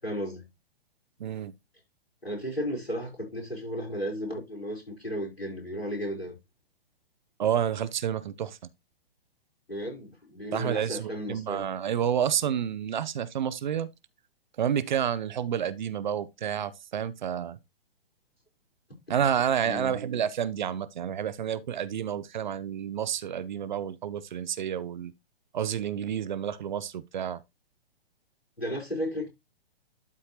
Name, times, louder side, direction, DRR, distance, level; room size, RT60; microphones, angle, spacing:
voice 1, 0.0-0.5 2.2-6.3 9.7-11.6 19.6-20.0 28.6-29.3, equal, 80° left, 4.9 m, -34 dB
voice 2, 1.2-1.5 7.4-8.6 10.5-13.9 14.6-17.6 19.1-25.1 25.5-27.4, right 9 dB, 50° right, 0.7 m, -29 dB
12.0 x 4.2 x 3.1 m
figure-of-eight pair, 115°, 30 cm